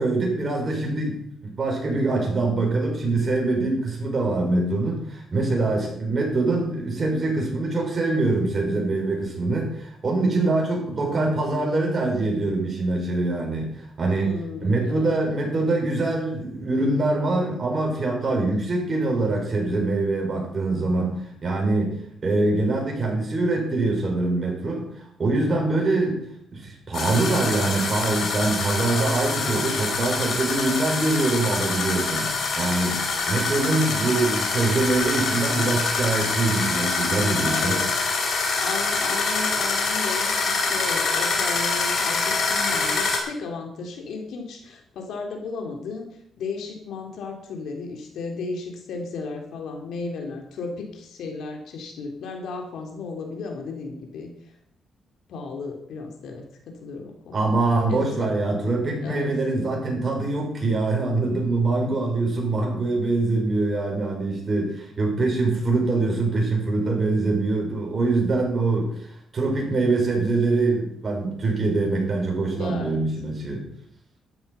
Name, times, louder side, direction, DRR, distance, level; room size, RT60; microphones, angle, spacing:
voice 1, 0.0-21.9 22.2-26.2 26.5-33.0 33.3-37.8 57.3-73.6, right 2 dB, 35° right, -1 dB, 6.3 m, -24 dB
voice 2, 14.1-15.1 37.4-37.8 38.6-46.1 46.4-54.5 55.3-57.6 57.9-58.3 59.0-59.3 72.5-73.0, left 4 dB, 80° left, 3 dB, 3.5 m, -34 dB
sound 1, 26.9-43.2, left 4 dB, 60° left, 4.6 m, -25 dB
13.0 x 12.0 x 5.8 m, 0.69 s
cardioid pair, 110°, 0 cm